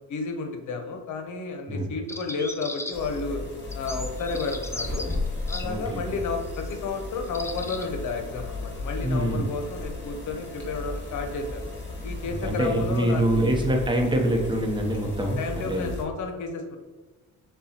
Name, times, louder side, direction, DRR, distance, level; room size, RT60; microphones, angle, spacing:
voice 1, 0.1-3.4 3.7-5.1 5.4-11.6 12.0-13.4 15.4-16.8, left 4 dB, 75° left, 4 dB, 0.8 m, -32 dB
sound 1, 2.1-3.2 3.7-5.7 6.5-6.7 7.3-7.9, left 2 dB, 10° left, 0.4 m, -37 dB
sound 2, 2.9-16.0, left 2 dB, 35° left, 1.2 m, -35 dB
voice 2, 5.6-6.0 9.0-9.5 12.4-15.9, right 1 dB, 15° right, 2 dB, 0.8 m, -25 dB
6.6 x 2.3 x 2.9 m, 1.2 s
cardioid pair, 90°, 30 cm